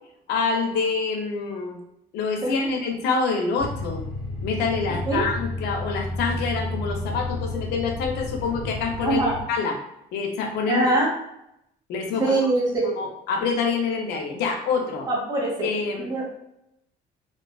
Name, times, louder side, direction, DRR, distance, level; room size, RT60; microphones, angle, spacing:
voice 1, 0.3-1.8 2.1-4.0 4.4-9.2 9.5-9.8 10.1-10.9 11.9-12.4 13.0-15.1 15.6-16.1, left 4 dB, 80° left, 3 dB, 0.6 m, -26 dB
sound 1, 3.6-9.4, left 2 dB, 65° right, 0.9 m, -31 dB
voice 2, 9.0-9.4 10.7-11.1 12.2-12.9 15.1-15.7 16.0-16.2, right 2 dB, 25° right, -3 dB, 1.0 m, -23 dB
2.5 x 2.3 x 2.2 m, 0.81 s
cardioid pair, 110°, 17 cm